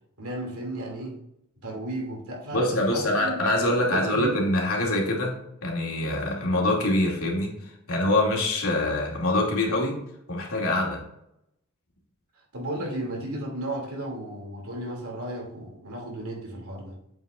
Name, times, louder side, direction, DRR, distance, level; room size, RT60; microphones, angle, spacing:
voice 1, 0.2-1.2 1.6-3.4 3.9-4.4 12.5-17.0, right 1 dB, 90° right, -1 dB, 2.5 m, -34 dB
voice 2, 2.5-5.3 5.6-7.5 7.9-10.0 10.3-11.0, left 1 dB, 80° left, -2 dB, 2.4 m, -24 dB
8.1 x 7.9 x 2.5 m, 0.78 s
head